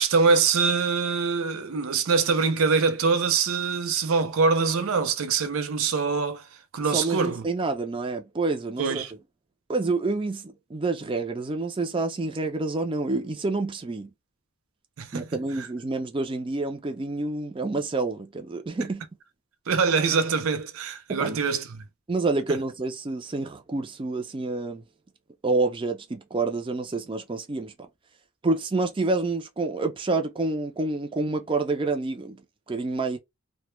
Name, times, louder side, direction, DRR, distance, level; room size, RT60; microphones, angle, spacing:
voice 1, 0.0-6.5 6.7-7.5 8.8-9.1 15.0-15.3 15.6-15.7 19.7-21.8 22.5-22.6, right 5 dB, 85° right, 0.5 m, -24 dB
voice 2, 6.9-9.0 9.7-14.1 15.1-19.0 21.1-21.4 22.1-24.8 25.4-27.7 28.4-32.4 32.7-33.2, right 3 dB, 25° right, 0.4 m, -28 dB
2.1 x 2.1 x 3.0 m
head